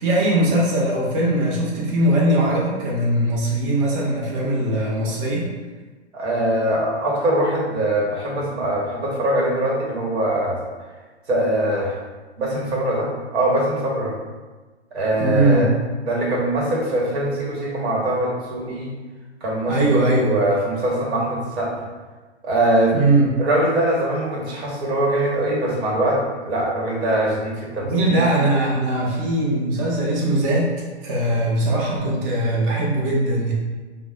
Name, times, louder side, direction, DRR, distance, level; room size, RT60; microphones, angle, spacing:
voice 1, 0.0-5.5 15.1-15.7 19.7-20.3 22.9-23.3 27.8-30.7 31.0-33.5, right 1 dB, 25° right, -4 dB, 0.7 m, -20 dB
voice 2, 6.1-10.6 11.3-12.0 12.4-14.2 14.9-15.7 16.1-19.0 19.4-21.8 22.4-22.9 23.4-28.2, right 1 dB, 65° right, -3 dB, 1.2 m, -22 dB
5.1 x 2.1 x 2.4 m, 1.3 s
hypercardioid pair, 135°, 35 cm